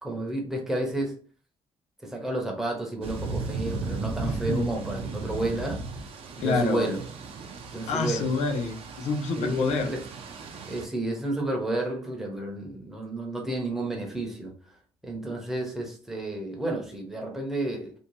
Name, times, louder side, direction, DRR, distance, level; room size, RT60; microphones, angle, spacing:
voice 1, 0.0-1.2 2.0-5.8 6.4-7.0 7.7-8.3 9.4-10.1 10.7-14.5 15.0-17.9, right 2 dB, 5° right, 0 dB, 0.6 m, -31 dB
sound 1, 3.0-10.8, right 4 dB, 55° right, 0.5 m, -36 dB
voice 2, 4.2-4.7 6.4-6.9 7.9-9.9, left 4 dB, 80° left, 6 dB, 0.5 m, -27 dB
2.6 x 2.2 x 2.9 m, 0.40 s
cardioid pair, 175°, 11 cm